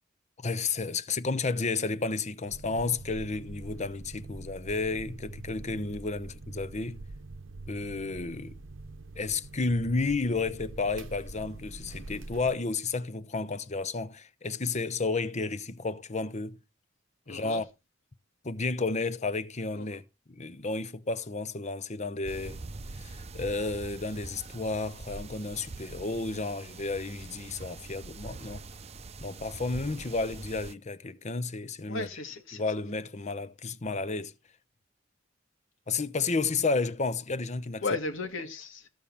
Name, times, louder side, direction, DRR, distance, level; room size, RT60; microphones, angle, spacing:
voice 1, 0.4-7.0 7.7-8.6 9.2-16.6 17.3-17.6 18.4-22.6 23.0-28.7 29.2-32.1 32.5-34.3 35.9-37.9, left 3 dB, 35° left, 0.8 m, -32 dB
sound 1, 2.5-12.5, right 2 dB, 75° right, 0.8 m, -44 dB
voice 2, 17.3-17.6 19.7-20.0 31.9-32.6 37.8-38.9, left 3 dB, 85° left, 2.4 m, -35 dB
sound 2, 22.2-30.7, right 3 dB, 35° right, 0.6 m, -44 dB
14.5 x 5.5 x 7.2 m
head